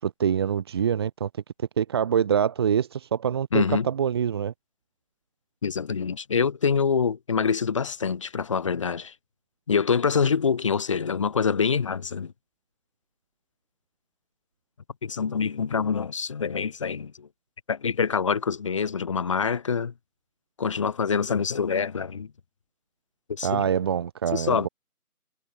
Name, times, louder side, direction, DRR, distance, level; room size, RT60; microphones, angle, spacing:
voice 1, 0.0-1.3 1.6-4.5 23.4-24.7, right 8 dB, 15° right, 6.3 m, -25 dB
voice 2, 3.5-3.9 5.6-9.1 9.7-12.3 15.0-17.3 17.7-19.9 20.6-22.3 23.3-23.7 24.3-24.7, left 6 dB, 20° left, 4.3 m, -25 dB
figure-of-eight pair, 170°, 45 cm